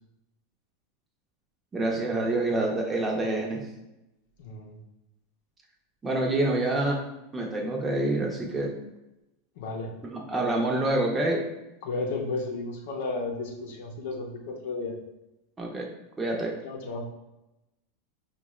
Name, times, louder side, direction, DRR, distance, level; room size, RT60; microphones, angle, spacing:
voice 1, 1.7-3.6 6.0-7.0 7.3-8.7 10.0-11.4 15.6-15.9 16.2-16.5, right 2 dB, 20° right, 0 dB, 0.8 m, -27 dB
voice 2, 4.4-4.8 9.6-9.9 11.8-14.9 16.6-17.0, left 3 dB, 70° left, 1 dB, 0.8 m, -33 dB
4.7 x 2.5 x 3.1 m, 0.94 s
hypercardioid pair, 105°, 0 cm